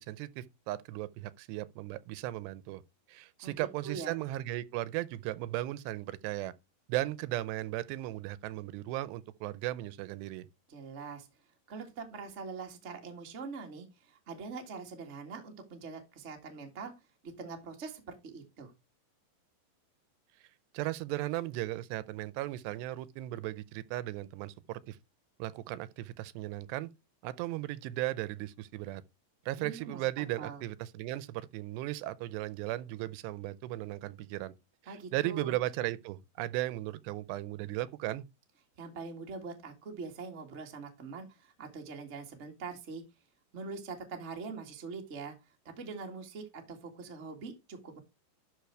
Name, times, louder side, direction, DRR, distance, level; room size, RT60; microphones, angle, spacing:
voice 1, 0.0-2.8 3.1-6.5 6.9-10.5 20.7-25.0 25.4-26.9 27.2-29.0 29.5-34.5 34.8-38.3, right 16 dB, 85° right, 2.7 m, -36 dB
voice 2, 3.4-4.1 10.7-11.3 11.7-16.9 17.2-18.7 29.6-30.6 34.9-35.5 38.8-43.0 43.5-45.3 45.8-48.0, right 4 dB, 50° right, 0.8 m, -43 dB
12.0 x 4.9 x 4.6 m
omnidirectional pair, 4.9 m